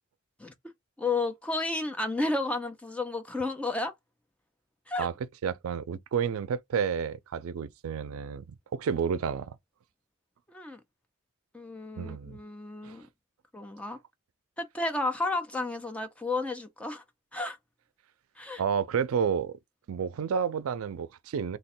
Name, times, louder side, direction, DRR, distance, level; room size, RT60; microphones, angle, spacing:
voice 1, 0.4-0.7 1.0-3.9 4.9-5.1 10.5-10.8 11.5-13.1 13.5-14.0 14.6-17.0 17.3-17.6 18.4-18.6, left 2 dB, 5° left, 0.4 m, -32 dB
voice 2, 5.4-9.6 12.0-12.4 12.8-13.0 18.6-19.6 19.9-21.6, right 7 dB, 85° right, 0.4 m, -30 dB
3.2 x 2.2 x 4.2 m
head